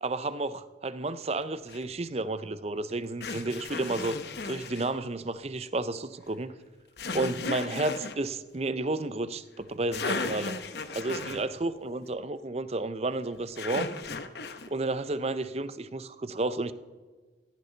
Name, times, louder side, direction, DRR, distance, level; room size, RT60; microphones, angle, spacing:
voice 1, 0.0-4.2 4.4-6.5 7.1-10.6 10.9-13.9 14.7-16.7, right 2 dB, 35° right, 14 dB, 0.6 m, -32 dB
sound 1, 1.7-1.8 3.2-4.9 7.0-8.2 9.6-9.7 9.9-11.5 13.6-14.7, left 3 dB, 60° left, 0.9 m, -35 dB
17.0 x 14.5 x 4.0 m, 1.4 s
head